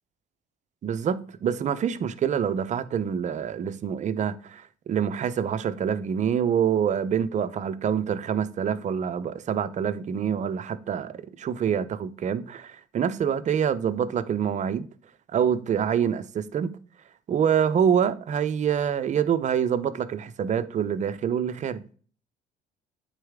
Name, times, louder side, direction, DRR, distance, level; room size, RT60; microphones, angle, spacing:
voice 1, 0.8-14.9 15.3-16.7 17.3-21.8, right 8 dB, 45° right, 0.7 m, -26 dB
9.1 x 4.1 x 3.6 m
cardioid pair, 110°, 17 cm